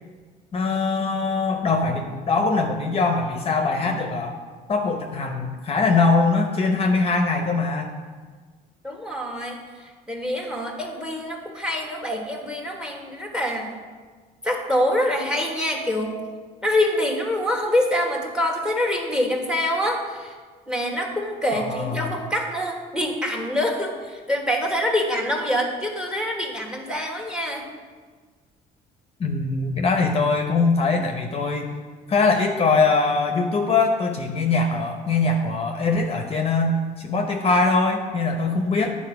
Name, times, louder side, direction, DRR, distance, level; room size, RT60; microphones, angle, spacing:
voice 1, 0.5-4.4 4.7-8.0 21.5-22.2 29.2-31.7 32.1-39.0, left 3 dB, 35° left, 3 dB, 0.8 m, -22 dB
voice 2, 8.8-13.8 14.4-16.2 16.6-20.4 20.7-27.7, left 1 dB, 5° right, 2 dB, 1.3 m, -25 dB
9.6 x 4.2 x 5.8 m, 1.5 s
cardioid pair, 110°, 17 cm